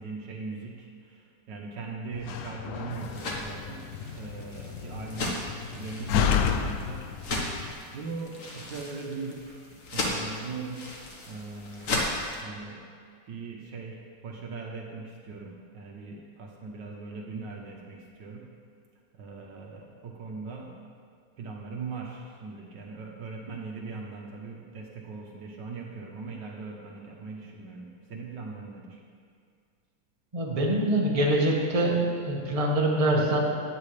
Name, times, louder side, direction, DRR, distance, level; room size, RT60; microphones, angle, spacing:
voice 1, 0.0-3.8 4.1-7.0 7.9-10.9 11.2-12.1 12.4-12.8 13.3-18.5 19.1-20.7 21.4-29.0, right 4 dB, 65° right, -1 dB, 1.6 m, -40 dB
Slam, 2.1-7.7, left 7 dB, 80° left, 0.8 m, -31 dB
sound 1, 2.9-12.4, left 2 dB, 45° left, 1.5 m, -36 dB
voice 2, 30.3-33.4, right 1 dB, 20° right, -3 dB, 1.4 m, -24 dB
17.0 x 8.6 x 3.3 m, 2.1 s
omnidirectional pair, 2.2 m